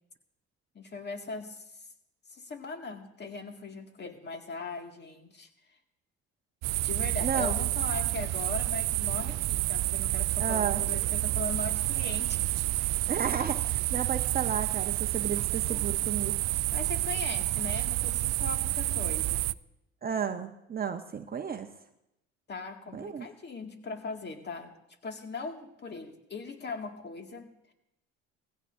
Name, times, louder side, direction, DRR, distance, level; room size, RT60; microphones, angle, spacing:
voice 1, 0.7-1.8 2.3-5.5 6.7-12.4 15.7-15.9 16.7-19.5 22.5-24.7 25.0-27.7, left 4 dB, 35° left, 4 dB, 2.0 m, -39 dB
sound 1, 6.6-19.5, right 18 dB, 60° right, 0.4 m, -29 dB
voice 2, 7.2-7.5 10.4-10.8 13.1-16.3 20.0-21.7 22.9-23.3, right 7 dB, 30° right, 6 dB, 0.8 m, -33 dB
20.0 x 16.0 x 2.6 m, 0.85 s
supercardioid pair, 75°, 30 cm